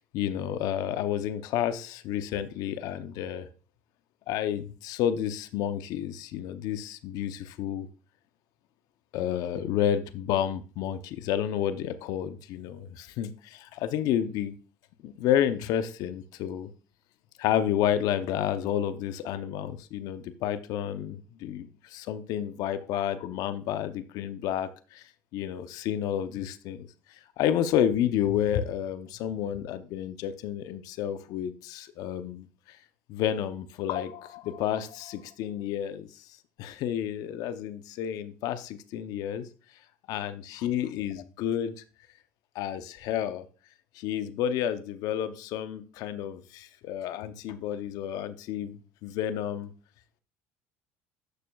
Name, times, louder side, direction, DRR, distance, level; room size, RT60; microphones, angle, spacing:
voice 1, 0.1-3.5 4.3-7.9 9.1-14.5 15.0-16.7 17.4-25.0 25.3-32.8 33.1-36.3 36.6-39.5 40.1-41.8 42.5-43.4 43.9-49.7, left 10 dB, 70° left, 12 dB, 0.7 m, -30 dB
11.5 x 6.8 x 2.3 m, 0.35 s
supercardioid pair, 95°, 7 cm